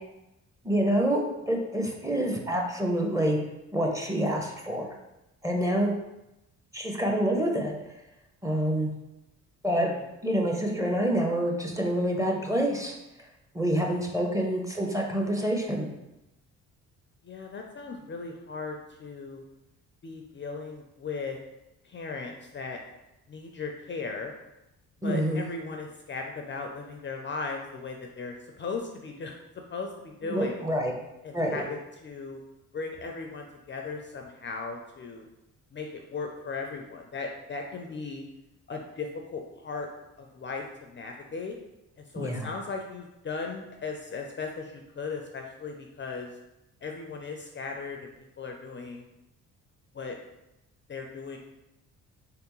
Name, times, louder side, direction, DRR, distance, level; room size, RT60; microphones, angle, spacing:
voice 1, 0.6-3.4 3.7-4.9 5.4-5.9 6.7-7.7 8.4-8.9 9.6-9.9 10.2-12.9 13.5-15.9 25.0-25.5 30.2-30.9 31.3-31.7 42.2-42.5, right 1 dB, 10° right, 0 dB, 0.7 m, -27 dB
voice 2, 17.2-19.4 20.0-21.4 21.8-22.8 23.3-24.3 25.0-29.3 29.7-30.7 31.2-31.8 32.0-32.4 32.7-35.3 35.7-38.3 38.7-39.9 40.2-41.5 42.1-46.3 46.8-48.1 48.4-49.1 49.9-50.2 50.9-51.4, left 4 dB, 35° left, 2 dB, 0.5 m, -37 dB
3.5 x 3.4 x 3.0 m, 0.92 s
cardioid pair, 75°, 34 cm